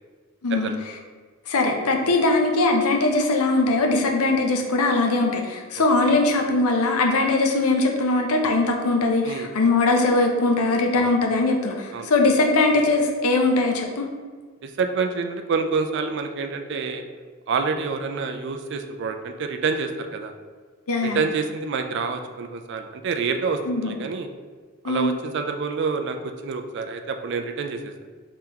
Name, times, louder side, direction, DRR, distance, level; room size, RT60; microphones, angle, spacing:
voice 1, 1.5-14.1 20.9-21.2 23.7-23.9 24.8-25.1, left 2 dB, 85° left, 2 dB, 0.6 m, -21 dB
voice 2, 5.8-6.2 9.2-9.5 10.9-11.1 11.9-12.1 14.6-17.0 17.5-20.3 21.0-24.3 24.8-27.9, right 4 dB, 50° right, 6 dB, 0.3 m, -28 dB
3.7 x 3.4 x 2.9 m, 1.5 s
head